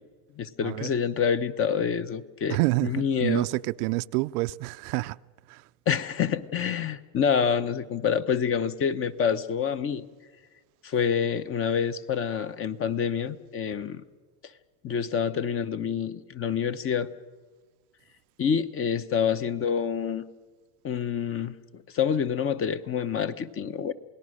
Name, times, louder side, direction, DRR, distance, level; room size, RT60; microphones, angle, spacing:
voice 1, 0.4-3.5 5.9-10.0 10.8-14.0 14.8-17.1 18.4-20.2 20.8-23.9, left 7 dB, 30° left, 0.8 m, -27 dB
voice 2, 2.5-5.2 5.5-5.6, right 22 dB, 70° right, 0.6 m, -28 dB
28.5 x 18.0 x 6.4 m
supercardioid pair, 125°, 47 cm